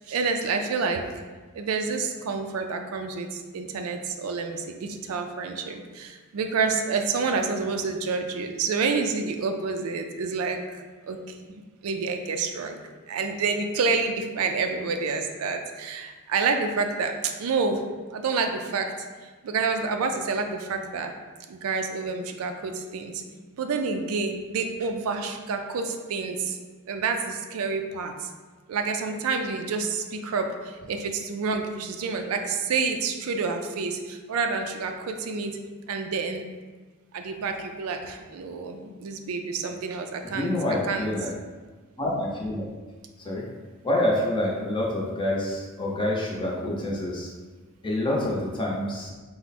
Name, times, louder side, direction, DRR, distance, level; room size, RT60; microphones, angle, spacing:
voice 1, 0.1-1.1 1.5-12.8 13.1-17.8 18.1-21.1 21.5-23.2 23.6-26.6 26.9-28.3 28.7-35.6 35.9-36.4 37.1-40.5 40.8-41.1, right 4 dB, 70° right, 5 dB, 0.4 m, -28 dB
voice 2, 40.3-41.3 42.0-42.6 43.2-43.4 43.8-47.3 47.8-49.1, left 1 dB, 20° left, -3 dB, 0.7 m, -27 dB
4.4 x 2.1 x 4.1 m, 1.4 s
head